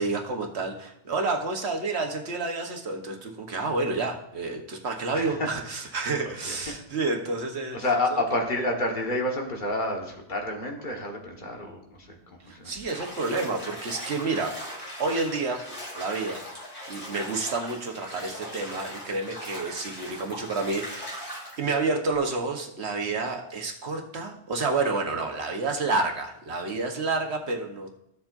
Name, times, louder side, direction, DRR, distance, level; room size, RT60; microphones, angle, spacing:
voice 1, 0.0-7.8 8.1-8.2 12.5-14.5 15.0-15.6 15.9-16.4 16.9-28.0, right 3 dB, 80° right, 3 dB, 1.4 m, -29 dB
voice 2, 5.1-5.5 6.2-6.8 7.7-12.7, left 2 dB, 50° left, 1 dB, 1.6 m, -29 dB
Bathtub (filling or washing), 12.8-21.6, equal, 30° left, 3.4 m, -39 dB
14.5 x 7.2 x 2.6 m, 0.77 s
omnidirectional pair, 1.1 m